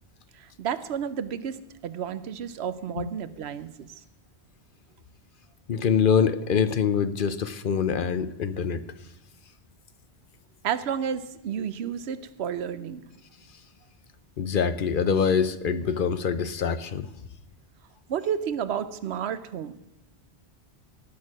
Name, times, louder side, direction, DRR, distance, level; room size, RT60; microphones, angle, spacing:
voice 1, 0.3-3.9 10.6-13.0 18.1-19.7, right 8 dB, 80° right, 14 dB, 0.9 m, -31 dB
voice 2, 5.7-8.8 14.4-17.1, left 6 dB, 60° left, 13 dB, 0.8 m, -24 dB
17.5 x 6.5 x 6.1 m, 0.89 s
omnidirectional pair, 1.1 m